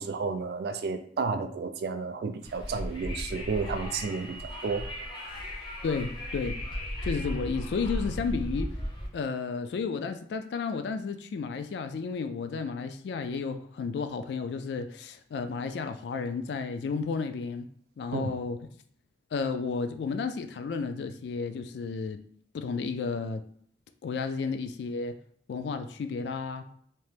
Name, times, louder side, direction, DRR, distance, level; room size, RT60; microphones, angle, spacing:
voice 1, 0.0-4.9 18.1-18.3, right 4 dB, 65° right, 8 dB, 0.3 m, -32 dB
Wind, 2.4-9.1, equal, 25° left, 0.6 m, -36 dB
voice 2, 5.8-6.6 7.0-8.7 9.1-17.7 18.0-18.6 19.3-22.2 22.5-23.4 24.0-25.2 25.5-26.7, left 5 dB, 75° left, 8 dB, 0.3 m, -32 dB
2.8 x 2.1 x 3.2 m, 0.62 s
head